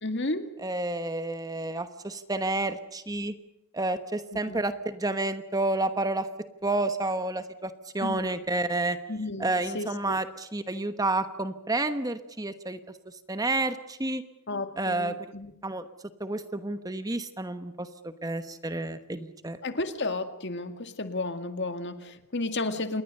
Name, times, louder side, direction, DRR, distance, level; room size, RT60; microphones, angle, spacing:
voice 1, 0.0-0.5 4.3-4.6 8.0-8.3 9.1-10.2 14.5-15.5 19.6-23.0, left 2 dB, 50° left, 8 dB, 2.0 m, -33 dB
voice 2, 0.6-3.3 3.7-6.3 6.6-9.0 9.4-12.8 13.3-14.2 14.8-15.2 15.6-15.8 16.2-19.6, right 2 dB, 15° right, 10 dB, 1.1 m, -30 dB
28.0 x 21.5 x 6.7 m, 0.84 s
head